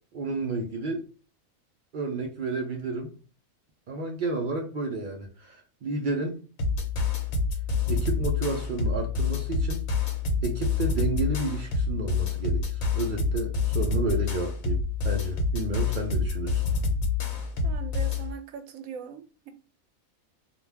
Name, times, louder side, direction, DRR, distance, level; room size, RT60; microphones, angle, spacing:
voice 1, 0.1-1.0 1.9-3.1 3.9-6.4 7.9-9.9 10.4-16.6, right 3 dB, 70° right, 0.4 m, -31 dB
sound 1, 6.6-18.3, left 4 dB, 80° left, 1.1 m, -27 dB
voice 2, 17.6-19.5, right 7 dB, 90° right, 1.0 m, -41 dB
2.4 x 2.2 x 3.2 m
omnidirectional pair, 1.4 m